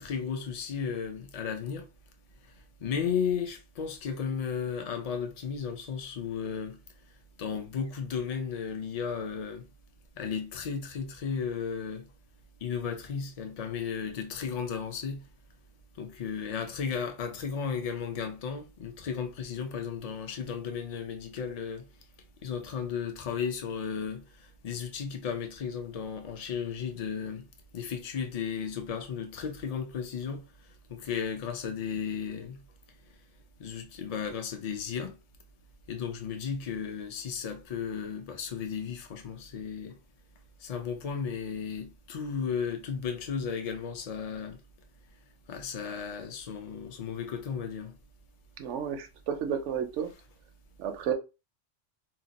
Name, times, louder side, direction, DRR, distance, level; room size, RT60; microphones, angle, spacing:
voice 1, 0.0-1.9 2.8-6.8 7.4-9.6 10.2-12.0 12.6-15.2 16.0-21.8 22.4-24.2 24.6-27.4 27.7-30.4 30.9-32.6 33.6-35.1 35.9-40.0 40.6-44.6 45.5-47.9, left 6 dB, 45° left, 0.5 m, -34 dB
voice 2, 48.6-50.1 50.8-51.1, right 8 dB, 75° right, 0.9 m, -32 dB
2.8 x 2.1 x 3.8 m
omnidirectional pair, 1.2 m